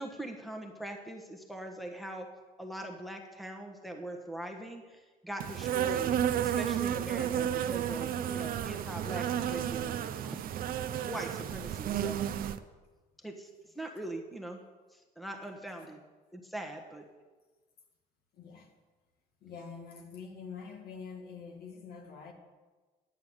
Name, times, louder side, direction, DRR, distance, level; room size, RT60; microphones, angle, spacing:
voice 1, 0.0-2.3 2.6-10.5 11.0-12.2 13.2-13.5 13.7-14.6 14.9-16.0 16.3-17.0, right 1 dB, ahead, 3 dB, 1.3 m, -42 dB
Insect, 5.4-12.6, right 10 dB, 60° right, 0.6 m, -32 dB
voice 2, 15.6-15.9 18.3-18.7 19.4-22.3, left 5 dB, 65° left, 3 dB, 2.1 m, -46 dB
10.5 x 6.9 x 7.9 m, 1.3 s
cardioid pair, 110°, 17 cm